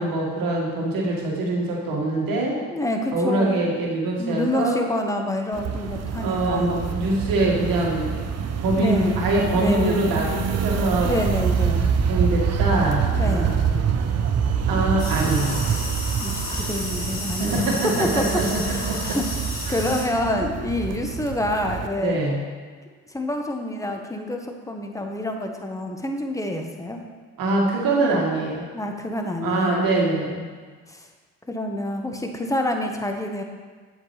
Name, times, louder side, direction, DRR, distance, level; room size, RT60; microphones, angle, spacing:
voice 1, 0.0-2.6 3.1-4.8 6.2-11.5 12.1-13.8 14.7-15.7 17.4-19.2 19.7-19.9 22.0-22.4 27.4-28.7 29.4-30.5, right 2 dB, 70° right, -2 dB, 2.0 m, -24 dB
voice 2, 2.7-3.8 4.2-6.9 8.7-9.3 9.5-10.1 11.0-11.9 13.1-13.5 16.2-18.3 18.6-19.3 19.7-22.2 23.1-27.0 28.7-29.8 30.9-31.1 31.5-33.4, left 1 dB, 10° left, 3 dB, 1.2 m, -27 dB
sound 1, 5.5-21.9, right 7 dB, 45° right, 0.8 m, -26 dB
sound 2, 15.0-20.0, left 2 dB, 80° left, 2.3 m, -32 dB
8.3 x 8.1 x 3.3 m, 1.5 s
hypercardioid pair, 55°, 36 cm